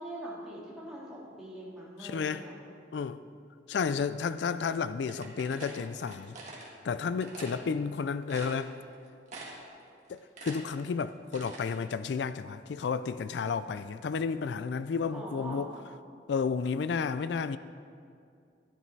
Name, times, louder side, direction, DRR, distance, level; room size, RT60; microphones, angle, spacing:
voice 1, 0.0-2.5 15.1-15.6, right 1 dB, ahead, 3.0 m, -42 dB
voice 2, 2.0-2.4 2.9-3.2 3.7-6.4 6.8-8.7 10.1-15.7 16.3-17.6, left 5 dB, 65° left, 0.3 m, -32 dB
sound 1, 5.1-6.7 7.2-7.6 8.0-8.1 8.3-8.9 9.3-9.7 10.0-11.7, right 3 dB, 40° right, 1.9 m, -45 dB
12.5 x 11.0 x 4.6 m
head